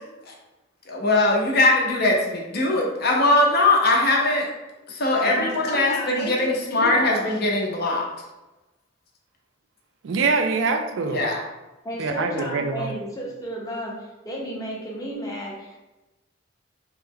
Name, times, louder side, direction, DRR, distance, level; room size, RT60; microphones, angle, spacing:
voice 1, 0.9-4.5 4.9-8.0 11.1-11.4, left 2 dB, 55° left, -1 dB, 0.7 m, -21 dB
voice 2, 5.2-7.2 11.8-15.8, equal, 20° left, -3 dB, 0.7 m, -32 dB
voice 3, 10.0-11.3 12.0-13.0, right 4 dB, 80° right, 6 dB, 0.4 m, -24 dB
3.1 x 2.1 x 3.5 m, 1.0 s
head